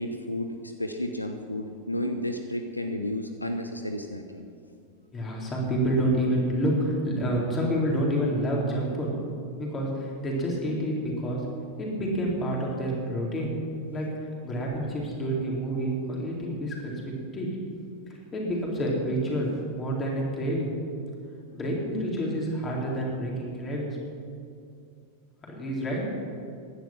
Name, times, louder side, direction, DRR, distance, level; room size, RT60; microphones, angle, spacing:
voice 1, 0.0-4.5, left 1 dB, 85° left, 7 dB, 0.8 m, -32 dB
voice 2, 5.1-9.1 9.5-11.4 11.8-13.6 13.9-17.5 18.3-20.7 21.5-24.0 25.6-26.0, right 1 dB, 20° left, -2 dB, 4.0 m, -28 dB
16.0 x 11.0 x 6.1 m, 2.4 s
figure-of-eight pair, 90°, 0 cm